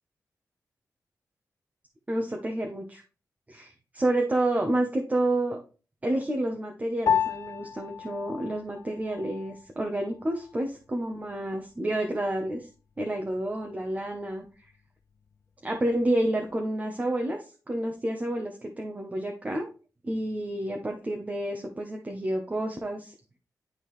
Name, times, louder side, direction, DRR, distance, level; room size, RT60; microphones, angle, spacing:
voice 1, 2.1-3.0 3.5-5.6 6.0-12.7 13.0-14.4 15.6-19.7 20.0-23.1, right 1 dB, 25° right, 2 dB, 0.9 m, -29 dB
Piano, 7.1-16.7, left 8 dB, 50° left, 0.3 m, -35 dB
10.5 x 3.8 x 3.1 m, 0.34 s
wide cardioid pair, 120°, 6 cm